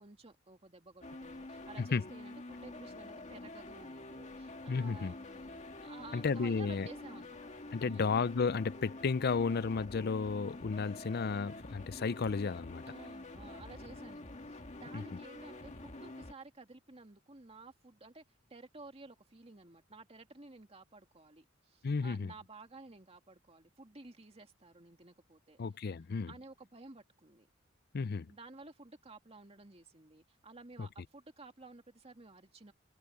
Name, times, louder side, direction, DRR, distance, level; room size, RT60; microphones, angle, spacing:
voice 1, 0.0-7.5 7.8-8.2 12.8-18.2 18.5-25.6 26.3-27.5 28.3-32.7, right 3 dB, 30° right, 2.3 m, -54 dB
sound 1, 1.0-16.3, left 2 dB, 35° left, 1.9 m, -47 dB
voice 2, 4.7-5.1 6.1-6.9 7.7-12.8 14.9-15.0 21.8-22.3 25.6-26.3 27.9-28.3 30.8-30.9, left 4 dB, 50° left, 0.5 m, -33 dB
head